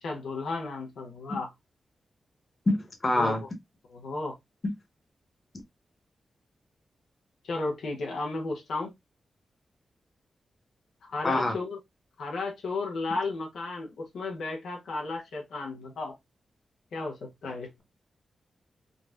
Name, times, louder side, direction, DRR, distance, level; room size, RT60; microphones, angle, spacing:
voice 1, 0.0-1.5 3.2-3.4 3.9-4.4 7.4-8.9 11.0-11.8 12.2-16.1 16.9-17.7, left 3 dB, 90° left, 0.9 m, -34 dB
voice 2, 2.7-3.4 11.2-11.6, left 2 dB, 40° left, 1.1 m, -25 dB
3.8 x 2.3 x 2.5 m
cardioid pair, 60°, 0 cm